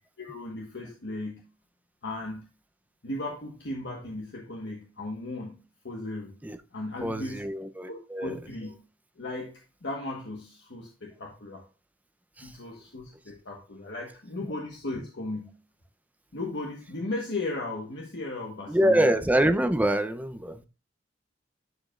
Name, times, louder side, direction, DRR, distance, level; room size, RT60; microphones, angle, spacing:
voice 1, 0.2-1.4 2.0-2.4 3.0-5.6 5.8-6.4 6.7-7.5 7.9-8.8 9.2-11.7 12.4-15.5 16.3-19.1, left 2 dB, 60° left, 0 dB, 1.3 m, -36 dB
voice 2, 7.0-8.4 12.4-12.5 18.7-20.6, right 1 dB, 10° right, 9 dB, 0.6 m, -25 dB
11.5 x 5.2 x 2.4 m, 0.32 s
head